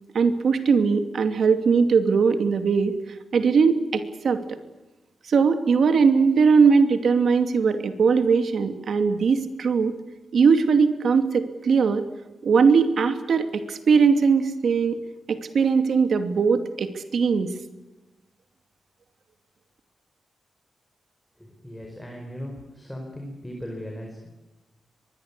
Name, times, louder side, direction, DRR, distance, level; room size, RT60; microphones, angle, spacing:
voice 1, 0.1-2.9 3.3-4.6 5.3-9.9 10.3-12.0 12.4-15.0 15.3-17.5, right 5 dB, 65° right, 8 dB, 2.6 m, -20 dB
voice 2, 21.4-24.3, equal, 5° left, 1 dB, 4.8 m, -38 dB
24.5 x 21.5 x 8.4 m, 1.1 s
wide cardioid pair, 145°, 0 cm